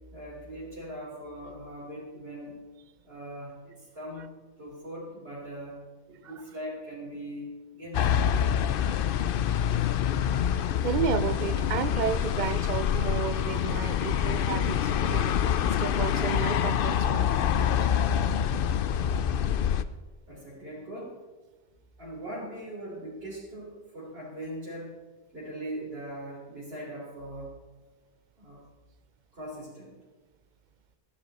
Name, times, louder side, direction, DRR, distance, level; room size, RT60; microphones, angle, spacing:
voice 1, 0.1-2.6 3.0-4.3 4.6-5.8 6.1-8.4 20.3-21.2 22.0-25.0 25.3-27.5 28.4-28.6 29.3-29.9, right 1 dB, 70° right, -8 dB, 3.9 m, -40 dB
sound 1, 7.9-19.8, left 9 dB, 65° left, 0.7 m, -26 dB
voice 2, 10.8-15.2 15.8-17.9, right 7 dB, 50° right, 13 dB, 0.7 m, -32 dB
15.0 x 11.5 x 4.1 m, 1.3 s
omnidirectional pair, 1.0 m